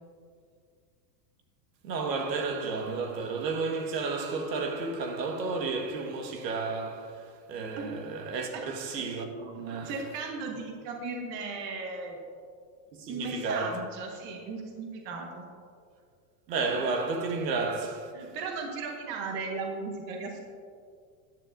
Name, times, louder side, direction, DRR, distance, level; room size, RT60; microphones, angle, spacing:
voice 1, 1.8-10.0 12.9-13.8 16.5-18.3, right 4 dB, 85° right, 1.6 m, -32 dB
voice 2, 9.8-12.2 13.1-15.4 18.1-20.5, right 4 dB, 25° right, 0.8 m, -36 dB
13.5 x 10.0 x 2.6 m
supercardioid pair, 170°, 49 cm